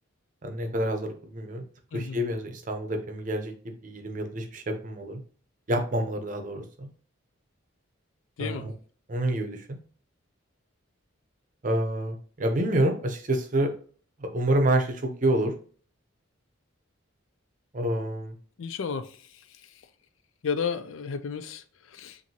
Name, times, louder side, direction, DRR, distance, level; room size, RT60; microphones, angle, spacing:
voice 1, 0.4-1.6 1.9-3.5 3.8-5.2 5.7-6.9 8.4-8.7 9.1-9.7 11.6-13.7 14.2-15.5 17.7-18.3, right 1 dB, 40° right, 0.7 m, -28 dB
voice 2, 8.4-8.7 18.6-19.7 20.4-22.2, left 6 dB, 75° left, 0.4 m, -33 dB
5.9 x 2.6 x 2.8 m
head